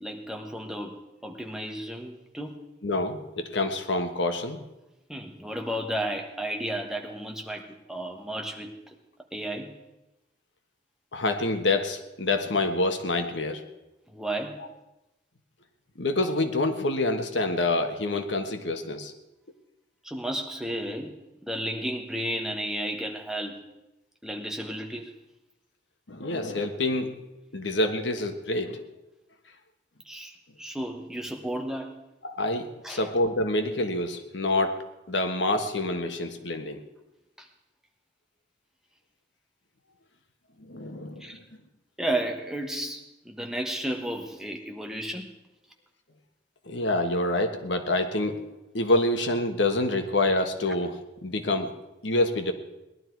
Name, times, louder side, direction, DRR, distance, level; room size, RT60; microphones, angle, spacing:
voice 1, 0.0-2.6 5.1-8.7 9.3-9.8 14.1-14.6 20.0-21.1 21.4-23.6 24.2-25.1 30.0-32.0 32.8-33.1 37.4-37.5 41.2-41.4 42.0-45.3, right 1 dB, 5° right, 2 dB, 1.3 m, -33 dB
voice 2, 2.8-4.6 11.1-13.6 14.6-14.7 16.0-19.1 26.1-27.1 27.5-28.8 32.2-34.8 35.1-36.8 40.7-41.3 46.7-48.4 48.7-51.7 52.0-52.5, left 2 dB, 80° left, 7 dB, 1.4 m, -27 dB
19.5 x 12.0 x 4.7 m, 0.98 s
head